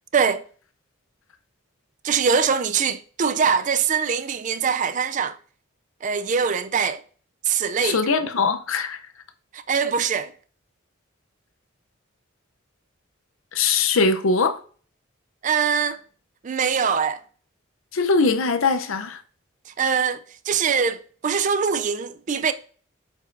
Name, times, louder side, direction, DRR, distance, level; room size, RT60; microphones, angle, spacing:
voice 1, 0.1-0.5 2.0-5.4 6.0-7.0 7.4-8.0 9.5-10.3 15.4-16.0 16.4-17.2 19.7-22.5, right 6 dB, 35° right, 0.4 m, -23 dB
voice 2, 7.8-9.0 13.5-14.6 17.9-19.2, left 4 dB, 75° left, 0.7 m, -21 dB
8.2 x 5.4 x 2.6 m
head